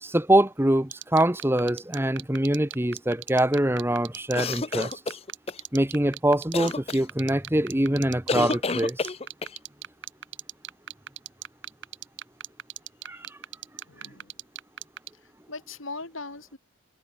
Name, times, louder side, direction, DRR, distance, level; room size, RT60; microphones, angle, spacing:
voice 1, 0.0-4.9 5.7-9.1 13.1-13.3, right 1 dB, 10° right, 1.2 m, -24 dB
sound 1, 0.9-15.1, right 10 dB, 55° right, 2.2 m, -36 dB
sound 2, 4.3-5.6 6.5-7.0 8.3-9.6, left 3 dB, 30° left, 0.7 m, -29 dB
voice 2, 13.9-14.3 15.2-16.6, left 3 dB, 70° left, 6.4 m, -40 dB
head